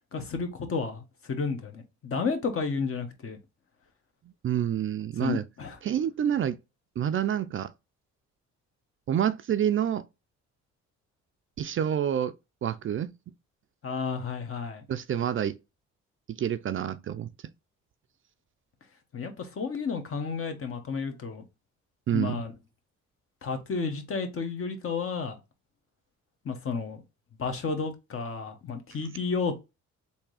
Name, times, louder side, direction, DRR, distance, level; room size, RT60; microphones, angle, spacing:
voice 1, 0.1-3.4 5.2-5.8 13.8-14.8 19.1-21.4 22.1-22.5 23.4-25.4 26.4-27.0 27.4-29.6, left 5 dB, 45° left, 1.2 m, -32 dB
voice 2, 4.4-5.4 5.8-6.6 7.0-7.7 9.1-10.1 11.6-12.3 12.6-13.1 14.9-15.6 16.3-17.3 22.1-22.5, right 9 dB, 45° right, 0.4 m, -28 dB
3.5 x 2.8 x 4.7 m
cardioid pair, 90°, 30 cm